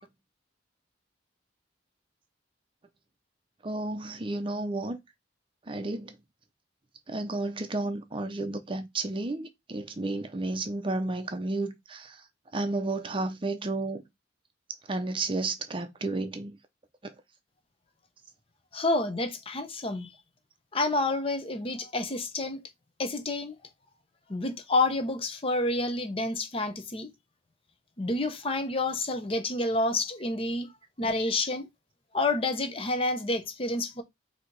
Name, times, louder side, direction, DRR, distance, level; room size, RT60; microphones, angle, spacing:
voice 1, 3.6-5.0 5.7-6.1 7.1-12.2 12.5-14.0 14.9-16.6, right 2 dB, 30° right, 0.6 m, -32 dB
voice 2, 18.7-20.1 20.7-22.6 23.0-23.6 24.3-27.1 28.0-30.7 31.0-31.7 32.1-34.0, left 2 dB, 30° left, 0.7 m, -29 dB
4.0 x 2.8 x 4.5 m
head